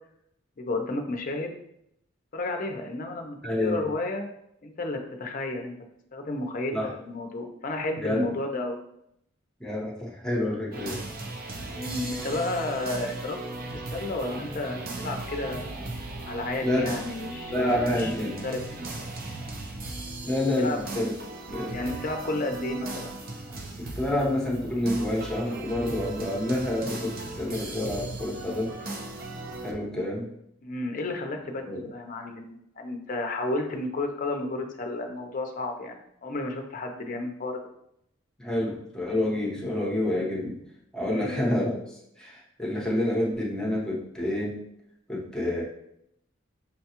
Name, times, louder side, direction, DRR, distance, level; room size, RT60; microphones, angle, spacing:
voice 1, 0.6-1.5 2.3-4.2 4.6-5.7 6.1-8.8 11.7-16.0 16.3-18.6 20.6-20.8 21.7-23.1 30.6-37.6 41.1-41.4, left 2 dB, 45° left, 4 dB, 0.5 m, -32 dB
voice 2, 3.4-3.9 6.7-6.9 8.0-8.2 9.6-11.0 16.6-16.9 17.5-18.4 20.2-21.1 21.5-21.9 23.8-28.7 29.6-30.3 31.6-31.8 38.4-40.6 40.9-44.6 45.1-45.6, left 1 dB, 5° left, -4 dB, 0.9 m, -28 dB
sound 1, 10.7-29.7, right 2 dB, 50° right, 0.5 m, -37 dB
5.6 x 2.3 x 2.8 m, 0.76 s
head